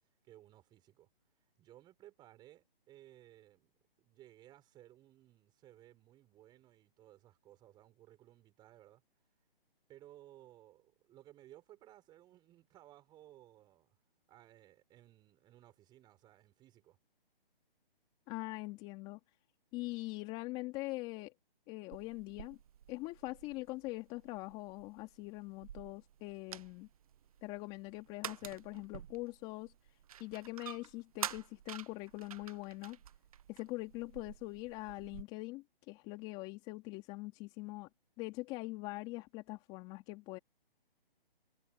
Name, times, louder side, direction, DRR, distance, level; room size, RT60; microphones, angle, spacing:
voice 1, 0.2-1.1 1.6-9.0 9.9-14.0 14.3-17.0, right 14 dB, 15° right, 6.6 m, -60 dB
voice 2, 18.3-19.2 19.7-21.3 21.7-22.6 22.9-26.9 27.4-29.7 30.2-33.0 33.5-37.9 38.2-40.4, left 21 dB, 15° left, 2.5 m, -43 dB
sound 1, 21.9-35.2, right 10 dB, 35° right, 1.1 m, -49 dB
hypercardioid pair, 160°, 30 cm